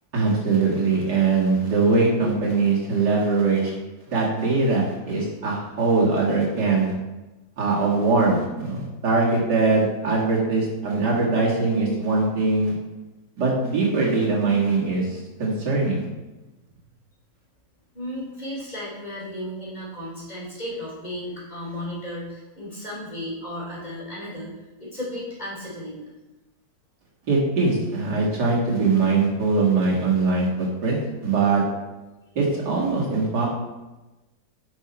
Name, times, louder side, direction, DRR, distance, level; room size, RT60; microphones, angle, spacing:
voice 1, 0.1-3.7 4.1-6.9 7.6-12.7 13.4-16.1 27.3-31.6 32.4-33.5, right 3 dB, 80° right, -4 dB, 2.5 m, -22 dB
voice 2, 17.9-26.0, left 1 dB, 25° left, -6 dB, 3.1 m, -34 dB
9.6 x 5.6 x 4.3 m, 1.1 s
omnidirectional pair, 1.8 m